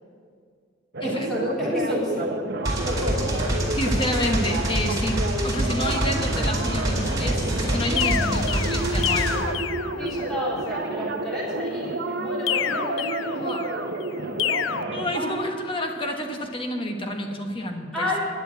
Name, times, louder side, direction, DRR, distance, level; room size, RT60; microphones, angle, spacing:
sound 1, 0.9-15.4, right 2 dB, 60° right, 0.9 m, -30 dB
voice 1, 1.0-2.3 2.7-3.7 10.0-13.8 17.9-18.2, left 1 dB, ahead, -8 dB, 3.6 m, -30 dB
sound 2, 2.6-9.3, right 1 dB, 20° right, 2.5 m, -26 dB
voice 2, 3.7-9.6 13.3-13.7 14.9-18.1, left 1 dB, 25° left, 4 dB, 1.1 m, -29 dB
sound 3, 8.0-10.4 12.5-13.8 14.4-14.8, left 10 dB, 75° left, 0.4 m, -28 dB
10.0 x 7.0 x 8.8 m, 2.1 s
head